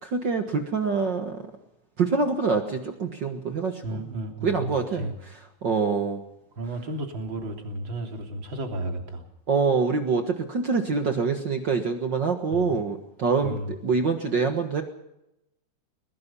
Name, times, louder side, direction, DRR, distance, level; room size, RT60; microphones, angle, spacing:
voice 1, 0.0-1.4 2.0-4.0 4.4-5.1 5.6-6.2 9.5-14.8, right 4 dB, 70° right, 5 dB, 1.0 m, -25 dB
voice 2, 3.8-5.1 6.6-9.2 12.5-12.7 13.4-13.7, right 1 dB, 30° right, 3 dB, 3.4 m, -33 dB
22.0 x 21.0 x 5.5 m, 0.88 s
omnidirectional pair, 4.5 m